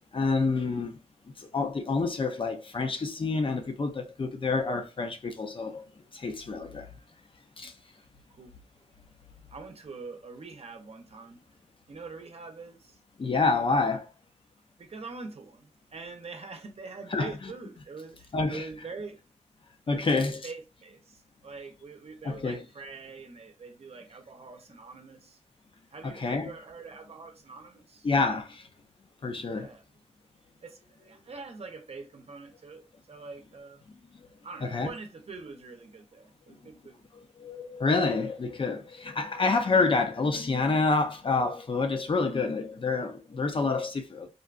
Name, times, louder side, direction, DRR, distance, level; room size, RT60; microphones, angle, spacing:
voice 1, 0.1-0.9 1.4-5.8 6.1-6.9 7.6-7.7 13.2-14.1 17.1-17.5 18.3-18.7 19.9-20.4 22.2-22.6 26.0-26.5 28.0-28.6 29.2-29.7 34.1-34.2 34.6-34.9 37.1-44.3, left 3 dB, 45° left, 0.5 m, -28 dB
voice 2, 9.5-11.4 11.9-13.0 14.8-19.2 19.9-25.4 25.9-28.1 29.5-29.8 30.6-33.9 34.4-37.1, right 4 dB, 55° right, 0.7 m, -44 dB
3.8 x 2.2 x 2.4 m
cardioid pair, 75°, 13 cm